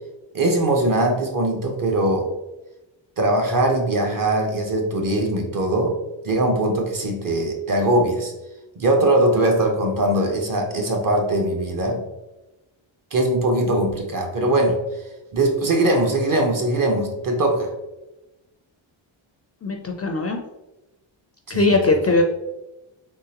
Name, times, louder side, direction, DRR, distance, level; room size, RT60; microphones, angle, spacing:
voice 1, 0.3-2.3 3.2-5.9 6.2-8.3 8.8-12.0 13.1-14.8 15.3-17.7 21.5-21.8, right 1 dB, 40° right, 2 dB, 0.9 m, -21 dB
voice 2, 19.6-20.4 21.5-22.2, left 3 dB, 35° left, 3 dB, 0.4 m, -20 dB
3.7 x 3.0 x 2.8 m, 0.99 s
cardioid pair, 105°, 48 cm